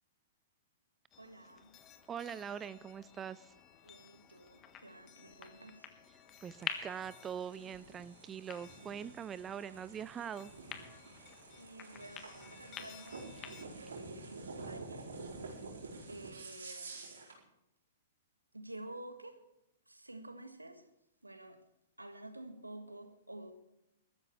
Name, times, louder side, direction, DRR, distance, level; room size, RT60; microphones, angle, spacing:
sound 1, 1.1-13.6, left 9 dB, 25° left, 1.5 m, -50 dB
voice 1, 1.2-1.8 3.8-6.9 11.1-15.1 15.8-17.4 18.5-19.4 19.9-20.9 21.2-21.6 22.0-23.6, right 1 dB, 90° right, 1.7 m, -51 dB
voice 2, 2.1-3.5 6.4-10.5, right 8 dB, 20° right, 0.4 m, -43 dB
sound 2, 6.4-17.4, right 3 dB, 70° right, 4.5 m, -49 dB
22.5 x 13.0 x 3.3 m
figure-of-eight pair, 110°, 0 cm